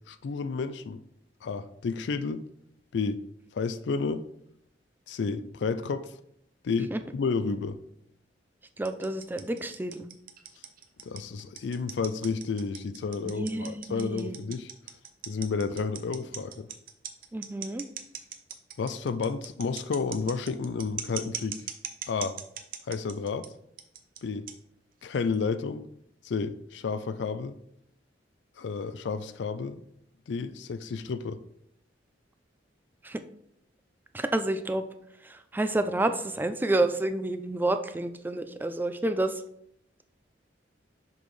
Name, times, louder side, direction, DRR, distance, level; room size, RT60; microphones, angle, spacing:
voice 1, 0.1-1.0 1.4-2.4 2.9-3.2 3.5-4.2 5.1-6.1 6.6-7.8 11.0-14.7 15.3-16.7 18.8-21.6 22.1-22.4 22.9-23.5 24.2-24.5 25.0-25.9 26.2-27.6 28.6-29.8 30.3-31.4, left 4 dB, 70° left, 12 dB, 0.4 m, -31 dB
voice 2, 8.8-10.1 13.2-14.4 17.3-17.8 33.0-33.2 34.1-34.8 35.2-39.4, right 2 dB, 10° right, 9 dB, 0.3 m, -29 dB
sound 1, 8.9-23.5 23.8-24.2 24.5-24.6 25.3-25.4, right 9 dB, 50° right, 0.6 m, -39 dB
6.0 x 5.3 x 3.2 m, 0.74 s
head